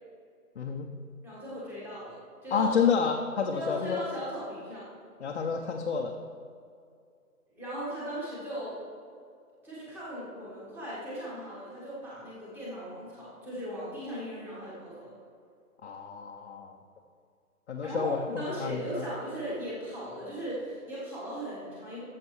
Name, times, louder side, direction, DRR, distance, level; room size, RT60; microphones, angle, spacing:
voice 1, 0.6-0.9 2.5-4.0 5.2-6.1 15.8-16.8 17.7-19.1, left 6 dB, 45° left, 1 dB, 0.6 m, -29 dB
voice 2, 1.2-2.8 3.5-4.9 7.5-8.8 9.6-15.1 17.8-22.0, equal, 5° right, -8 dB, 1.2 m, -38 dB
13.5 x 7.4 x 3.1 m, 2.3 s
hypercardioid pair, 155°, 44 cm